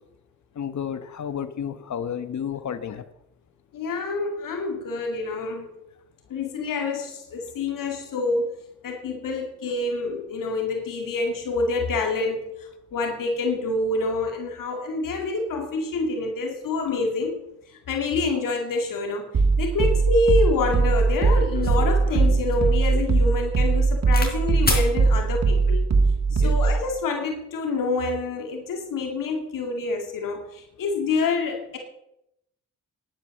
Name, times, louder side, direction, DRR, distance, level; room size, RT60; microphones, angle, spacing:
voice 1, 0.6-3.0 26.4-26.5, left 8 dB, 60° left, 13 dB, 1.2 m, -31 dB
voice 2, 3.7-5.7 6.3-17.4 17.7-19.3 19.6-25.9 26.3-31.8, left 3 dB, 80° left, 3 dB, 2.3 m, -27 dB
sound 1, 19.3-26.8, right 4 dB, 55° right, 1.9 m, -20 dB
sound 2, 21.0-21.1 21.5-24.3 24.6-24.9 25.8-26.1, left 2 dB, 30° left, 4.1 m, -30 dB
10.5 x 9.5 x 6.6 m, 0.82 s
cardioid pair, 65°, 32 cm